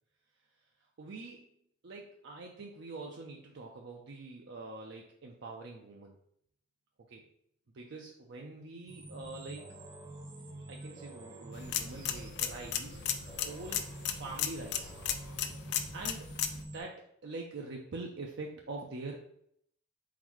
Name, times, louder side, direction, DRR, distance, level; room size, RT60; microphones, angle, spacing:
voice 1, 1.0-1.5 1.8-6.2 7.1-7.2 7.7-9.7 10.7-14.9 15.9-19.2, right 3 dB, 60° right, 0 dB, 0.5 m, -45 dB
sound 1, 8.9-16.8, right 1 dB, 25° right, 0.8 m, -47 dB
sound 2, 11.5-16.6, left 9 dB, 55° left, 0.4 m, -36 dB
4.3 x 3.9 x 3.0 m, 0.70 s
head